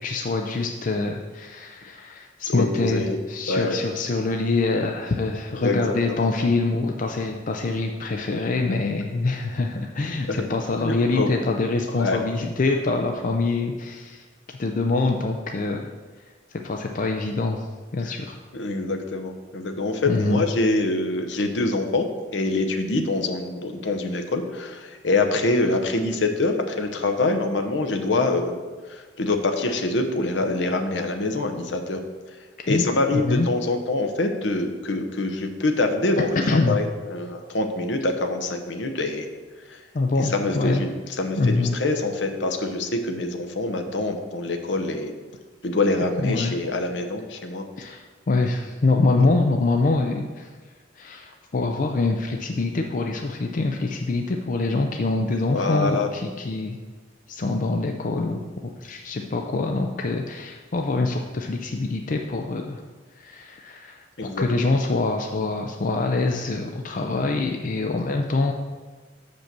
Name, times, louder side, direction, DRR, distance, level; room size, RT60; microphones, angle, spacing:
voice 1, 0.0-14.2 14.6-15.9 16.6-17.7 17.9-18.4 20.1-20.4 32.6-32.9 33.1-33.5 36.5-36.8 39.9-40.8 41.4-41.8 46.2-46.5 47.8-50.5 51.0-56.8 57.3-58.4 58.8-62.8 63.2-68.5, left 3 dB, 45° left, 3 dB, 0.5 m, -25 dB
voice 2, 2.5-3.2 3.5-3.8 5.5-5.8 6.2-6.3 10.3-10.4 10.8-11.3 11.9-12.2 18.0-18.1 18.5-28.6 28.9-32.0 32.7-39.3 39.7-39.8 40.2-45.1 45.6-47.9 55.5-56.1 64.2-64.5, left 2 dB, 70° left, 5 dB, 0.8 m, -25 dB
6.7 x 5.2 x 5.9 m, 1.4 s
head